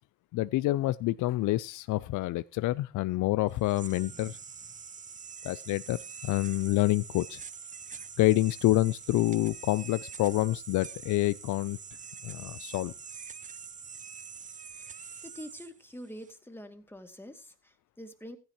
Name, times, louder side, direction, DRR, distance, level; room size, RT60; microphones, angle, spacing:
voice 1, 0.3-4.4 5.4-7.4 8.2-11.8 12.2-12.9, left 17 dB, 85° left, 0.5 m, -27 dB
sound 1, 3.5-16.3, right 6 dB, 25° right, 0.5 m, -45 dB
voice 2, 15.3-18.4, equal, 5° left, 2.4 m, -46 dB
15.5 x 10.5 x 2.9 m
cardioid pair, 90°, 30 cm